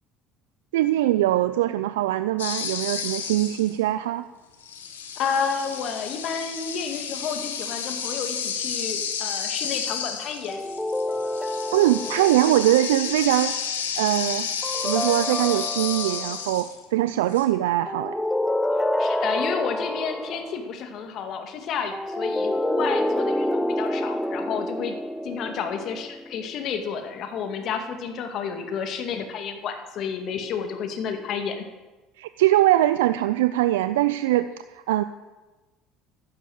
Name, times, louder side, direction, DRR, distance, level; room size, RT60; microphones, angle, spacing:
voice 1, 0.7-4.2 11.7-13.6 14.0-14.5 14.8-18.1 32.2-35.0, right 14 dB, 80° right, 12 dB, 0.4 m, -22 dB
sound 1, 2.4-3.8 4.5-16.8 17.3-17.4, left 7 dB, 90° left, 1.7 m, -31 dB
voice 2, 5.2-10.7 19.0-25.0 25.2-31.6, left 6 dB, 55° left, 6 dB, 2.1 m, -31 dB
sound 2, 10.5-12.9 14.6-16.5 17.9-20.6 21.9-26.4, left 1 dB, 10° left, 1.0 m, -28 dB
12.0 x 10.5 x 7.9 m, 1.2 s
hypercardioid pair, 70°, 0 cm